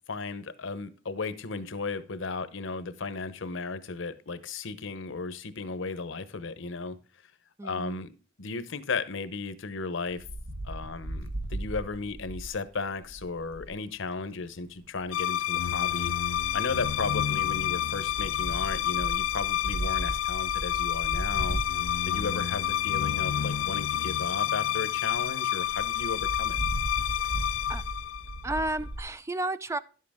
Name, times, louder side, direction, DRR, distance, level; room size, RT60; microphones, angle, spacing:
voice 1, 0.1-7.0 7.6-8.1 8.4-10.2 10.6-16.1 16.5-21.6 22.1-26.6, left 4 dB, 65° left, 14 dB, 0.9 m, -35 dB
voice 2, 7.6-8.0 27.2-27.3 27.7-27.8 28.4-29.8, right 2 dB, 15° right, 14 dB, 0.4 m, -32 dB
Wind, 10.1-13.7 14.8-15.3 16.0-23.0 23.6-23.7 23.9-24.0 24.4-24.5 24.7-24.8 25.1-25.2 25.7-29.0, right 1 dB, 85° right, 1.6 m, -37 dB
sound 1, 15.1-28.7, left 11 dB, 80° left, 0.4 m, -29 dB
11.0 x 7.6 x 3.5 m, 0.37 s
head